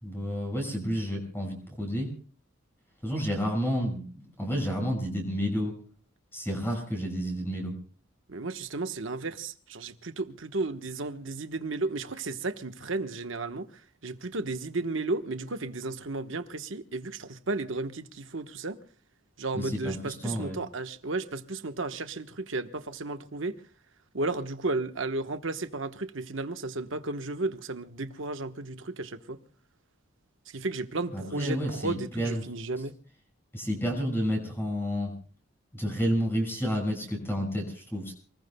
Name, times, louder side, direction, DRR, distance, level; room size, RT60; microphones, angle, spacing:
voice 1, 0.0-2.1 3.0-5.8 6.3-7.7 19.5-20.6 31.1-32.4 33.5-35.1 35.7-38.1, equal, 10° left, 5.8 m, -30 dB
voice 2, 8.3-18.8 19.4-23.6 24.1-29.4 30.5-32.9, right 3 dB, 70° right, 1.2 m, -33 dB
28.5 x 20.5 x 2.3 m
head